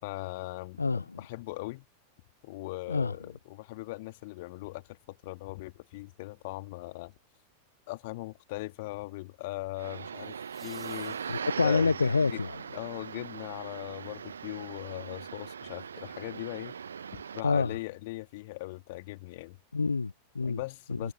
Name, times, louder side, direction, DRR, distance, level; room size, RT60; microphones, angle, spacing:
voice 1, 0.0-1.9 2.4-7.1 7.9-11.4 11.6-11.9 12.3-12.4 12.7-16.7 17.1-19.6 20.4-21.1, left 21 dB, 50° left, 2.2 m, -39 dB
voice 2, 0.8-1.2 2.9-3.2 11.3-12.6 17.4-17.8 19.7-20.6 20.9-21.1, left 4 dB, 80° left, 0.4 m, -27 dB
sound 1, 7.1-7.5 10.1-12.0 14.9-15.0, right 8 dB, 25° right, 4.8 m, -57 dB
sound 2, 9.8-17.4, right 7 dB, 70° right, 0.9 m, -40 dB
figure-of-eight pair, 90°, 0 cm